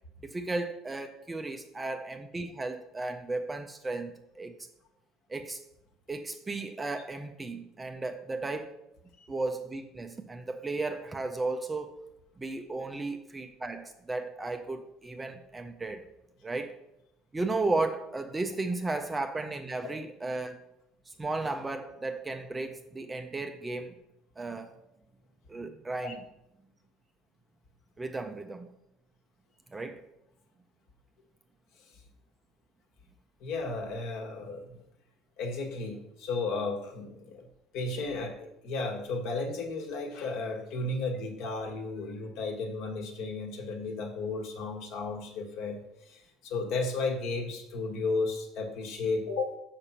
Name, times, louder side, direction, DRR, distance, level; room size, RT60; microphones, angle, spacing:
voice 1, 0.2-4.5 5.3-5.6 6.1-8.8 9.3-12.0 12.4-16.1 16.4-16.7 17.3-20.6 21.2-24.0 24.4-24.7 25.5-26.2 28.0-28.7 29.7-30.0, right 3 dB, 10° right, 7 dB, 0.4 m, -34 dB
voice 2, 33.4-34.8 35.4-37.5 37.7-49.6, left 3 dB, 55° left, 4 dB, 1.3 m, -34 dB
6.9 x 5.9 x 5.5 m, 0.85 s
cardioid pair, 175°, 0 cm